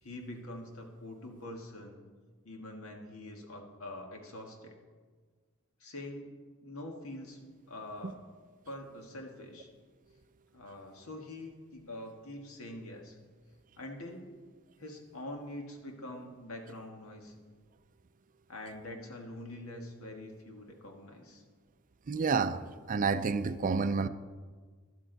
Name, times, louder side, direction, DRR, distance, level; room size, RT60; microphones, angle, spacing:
voice 1, 0.0-2.0 2.4-4.8 5.8-6.3 6.6-7.4 7.7-8.2 8.7-9.7 10.5-13.2 13.8-14.3 14.8-17.4 18.5-21.4, left 1 dB, 75° left, 2 dB, 1.8 m, -44 dB
voice 2, 22.1-22.6 22.9-24.1, right 4 dB, 40° right, 12 dB, 0.4 m, -29 dB
12.5 x 12.0 x 4.0 m, 1.5 s
head